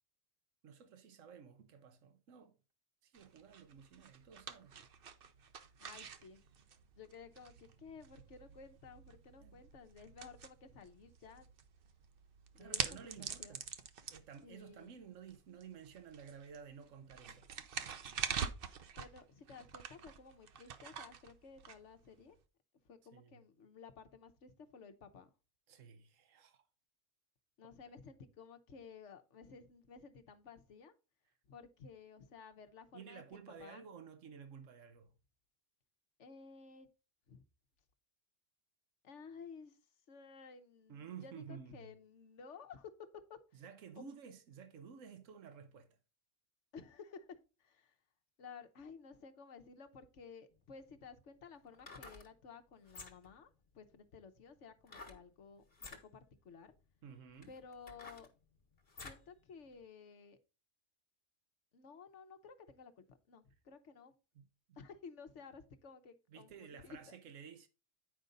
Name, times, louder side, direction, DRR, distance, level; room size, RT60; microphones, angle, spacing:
voice 1, 0.6-2.6 3.0-4.8 9.4-9.6 12.5-13.7 14.1-17.5 23.1-23.4 25.7-26.6 32.9-35.1 40.9-41.9 43.5-46.0 57.0-57.5 64.3-64.8 66.3-67.7, right 7 dB, 85° right, 1.3 m, -53 dB
sound 1, 3.1-22.4, right 7 dB, 55° right, 0.8 m, -46 dB
voice 2, 5.8-6.4 7.0-11.5 12.5-13.6 14.4-15.0 19.0-22.4 22.8-25.3 27.6-30.9 31.5-33.8 36.2-36.9 37.3-37.4 39.0-39.8 40.1-42.9 43.3-43.6 44.0-44.1 46.7-47.9 48.4-56.8 57.5-58.3 59.0-60.4 61.7-64.1 64.8-67.2, left 5 dB, 70° left, 1.2 m, -55 dB
sound 2, 50.5-50.6 51.7-52.3 52.8-53.4 54.9-55.2 55.7-56.0 56.8-56.9 57.4-59.3 59.7-59.8, left 3 dB, 50° left, 1.6 m, -52 dB
9.2 x 5.2 x 3.9 m
omnidirectional pair, 1.3 m